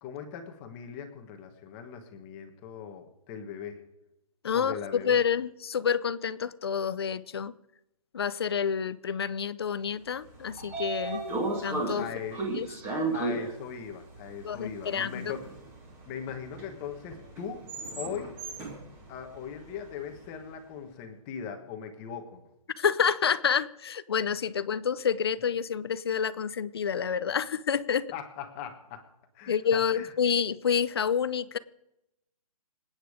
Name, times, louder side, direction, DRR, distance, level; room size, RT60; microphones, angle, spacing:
voice 1, 0.0-3.8 4.5-5.2 12.0-12.4 13.1-15.4 16.1-17.7 18.0-18.3 19.1-22.4 28.1-29.0 29.3-30.1, left 7 dB, 15° left, 5 dB, 1.3 m, -40 dB
voice 2, 4.4-7.5 8.1-11.2 11.6-12.0 12.5-12.7 14.4-15.3 22.8-28.1 29.5-31.6, left 7 dB, 40° left, 16 dB, 0.6 m, -28 dB
Train / Sliding door, 10.1-20.3, right 2 dB, 10° right, 2.0 m, -36 dB
27.0 x 9.2 x 5.0 m, 0.88 s
hypercardioid pair, 170°, 19 cm